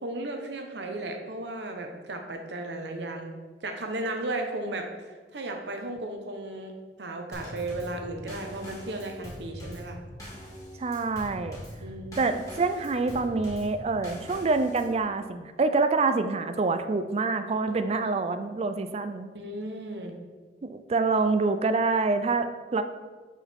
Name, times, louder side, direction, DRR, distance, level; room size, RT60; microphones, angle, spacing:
voice 1, 0.0-10.0 11.8-12.2 18.5-18.6 19.3-20.2, right 2 dB, 75° right, 4 dB, 0.9 m, -35 dB
Drum kit / Snare drum / Bass drum, 7.3-15.0, equal, 20° left, 2.1 m, -42 dB
voice 2, 10.8-11.6 12.2-19.3 20.6-22.8, right 3 dB, 35° right, 9 dB, 0.4 m, -26 dB
9.8 x 4.7 x 3.5 m, 1.4 s
head